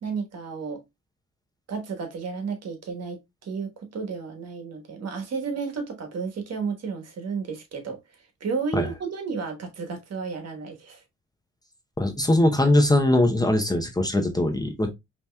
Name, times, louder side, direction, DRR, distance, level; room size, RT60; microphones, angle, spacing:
voice 1, 0.0-0.8 1.7-8.0 8.4-11.0, right 5 dB, 55° right, 1.3 m, -32 dB
voice 2, 12.0-14.9, left 1 dB, 15° left, 0.7 m, -21 dB
5.1 x 3.0 x 2.2 m
cardioid pair, 90°, 30 cm